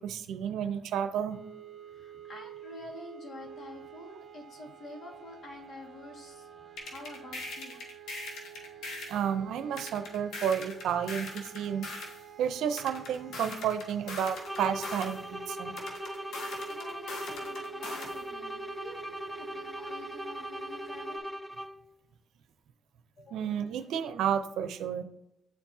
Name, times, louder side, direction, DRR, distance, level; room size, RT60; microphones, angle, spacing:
voice 1, 0.0-1.4 9.1-11.9 12.4-15.8 23.3-25.0, right 8 dB, 80° right, 9 dB, 0.6 m, -31 dB
sound 1, 1.3-21.2, right 8 dB, 45° right, 1.4 m, -49 dB
voice 2, 1.9-6.5 6.8-7.8 16.2-21.2 23.2-23.5, left 2 dB, 55° left, 0 dB, 1.9 m, -48 dB
sound 2, 6.8-9.2 9.8-12.2 12.8-15.2 15.8-18.2, left 2 dB, 75° left, 1.6 m, -41 dB
sound 3, 14.4-22.0, equal, ahead, 0.4 m, -40 dB
9.3 x 4.6 x 2.8 m, 0.84 s
cardioid pair, 90°, 0 cm